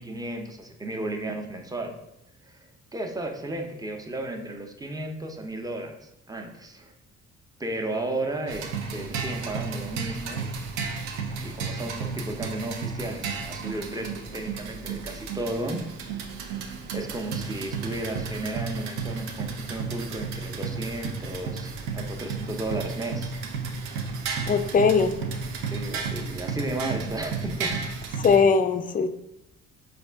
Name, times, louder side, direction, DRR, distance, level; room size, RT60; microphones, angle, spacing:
voice 1, 0.0-2.0 2.4-6.9 7.6-10.4 11.4-15.9 16.6-16.7 16.9-23.3 25.7-27.8, right 1 dB, 10° right, 4 dB, 0.6 m, -34 dB
sound 1, 8.5-28.4, right 5 dB, 85° right, 0.5 m, -33 dB
voice 2, 24.5-25.2 28.2-29.1, left 5 dB, 25° left, 9 dB, 0.4 m, -20 dB
4.2 x 2.4 x 3.3 m, 0.84 s
hypercardioid pair, 50°, 33 cm